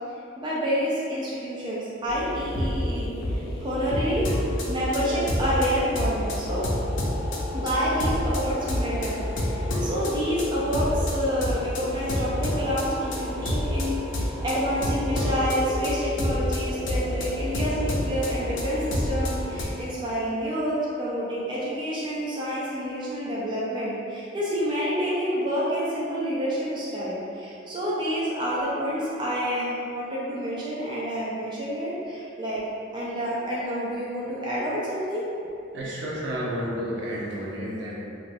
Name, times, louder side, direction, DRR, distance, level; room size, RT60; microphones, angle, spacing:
voice 1, 0.4-4.3 4.6-6.7 7.5-32.6 32.9-35.2, equal, 25° right, -8 dB, 0.4 m, -28 dB
sound 1, 2.1-19.6, left 1 dB, 70° left, 0.5 m, -28 dB
voice 2, 35.7-37.9, equal, 70° right, -6 dB, 0.6 m, -31 dB
2.4 x 2.2 x 3.2 m, 2.7 s
head